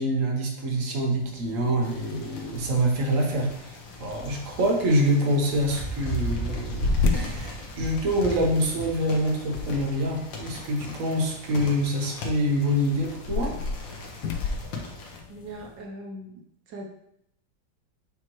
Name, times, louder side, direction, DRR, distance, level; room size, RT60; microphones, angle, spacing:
voice 1, 0.0-13.5, equal, 50° right, 0 dB, 1.4 m, -26 dB
sound 1, 1.0-15.8, left 4 dB, 70° left, 1.1 m, -35 dB
sound 2, 1.8-15.2, equal, 85° left, 1.9 m, -37 dB
voice 2, 15.3-16.4 16.7-16.9, right 1 dB, 75° right, 1 dB, 1.5 m, -40 dB
7.6 x 4.4 x 3.1 m, 0.75 s
omnidirectional pair, 2.0 m